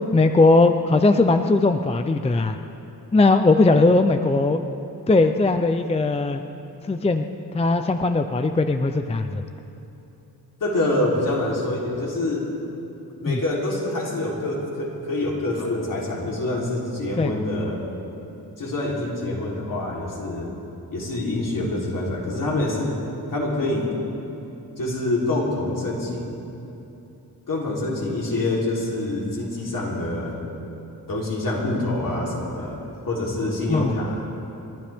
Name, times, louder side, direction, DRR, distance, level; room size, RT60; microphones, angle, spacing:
voice 1, 0.1-2.6 3.1-4.6 5.1-6.4 6.8-7.3 7.5-9.4 13.3-13.4 17.2-17.3 33.7-33.9, left 3 dB, 15° left, 7 dB, 0.5 m, -19 dB
voice 2, 10.6-12.5 13.2-17.8 18.6-20.5 20.9-23.0 23.3-23.9 24.8-26.4 27.5-30.4 31.1-32.8 33.1-34.2, left 2 dB, 60° left, -4 dB, 3.5 m, -26 dB
30.0 x 11.5 x 3.5 m, 2.9 s
wide cardioid pair, 115°, 38 cm